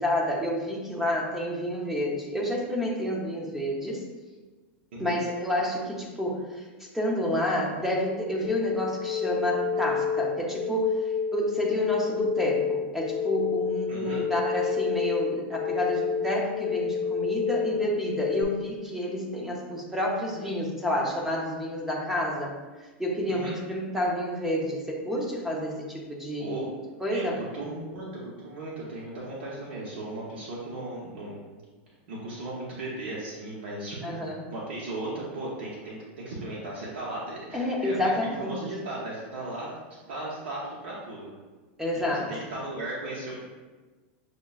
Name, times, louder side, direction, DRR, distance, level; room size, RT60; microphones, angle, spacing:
voice 1, 0.0-4.0 5.0-22.5 22.8-26.7 27.0-27.4 34.0-34.5 37.5-38.6 41.8-42.3, equal, 5° right, -2 dB, 0.7 m, -29 dB
sound 1, 8.4-18.4, left 6 dB, 45° left, 0.5 m, -29 dB
voice 2, 13.9-14.2 23.3-23.6 26.4-26.7 27.1-31.6 32.1-41.4 41.9-43.5, right 2 dB, 85° right, -6 dB, 0.8 m, -37 dB
6.4 x 2.1 x 2.3 m, 1.3 s
supercardioid pair, 145°, 6 cm